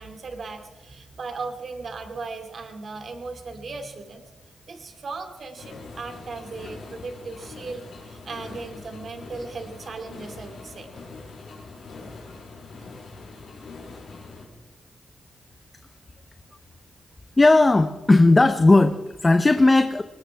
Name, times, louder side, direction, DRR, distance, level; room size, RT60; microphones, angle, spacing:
voice 1, 0.0-4.2 4.7-10.9, right 4 dB, 60° right, 6 dB, 2.5 m, -37 dB
sound 1, 5.6-14.5, left 3 dB, 80° left, 5.6 m, -42 dB
voice 2, 17.4-20.0, left 2 dB, 25° left, 9 dB, 0.8 m, -16 dB
21.0 x 20.0 x 3.5 m, 1.2 s
cardioid pair, 80°, 0 cm